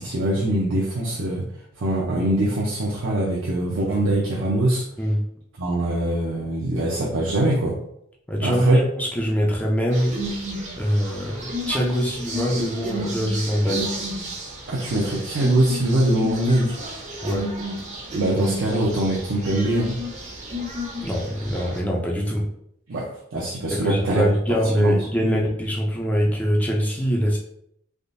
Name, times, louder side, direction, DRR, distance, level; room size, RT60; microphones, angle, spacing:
voice 1, 0.0-1.5 1.8-4.8 5.6-7.8 8.4-8.8 14.7-16.8 18.1-19.9 22.9-24.3 24.8-25.4, right 1 dB, 80° right, -5 dB, 0.7 m, -23 dB
voice 2, 8.3-10.1 10.8-14.0 17.2-17.5 21.0-22.5 23.7-27.4, equal, 10° left, -2 dB, 0.5 m, -23 dB
sound 1, 9.9-21.8, equal, 35° right, 0.7 m, -32 dB
3.5 x 2.5 x 2.6 m, 0.72 s
head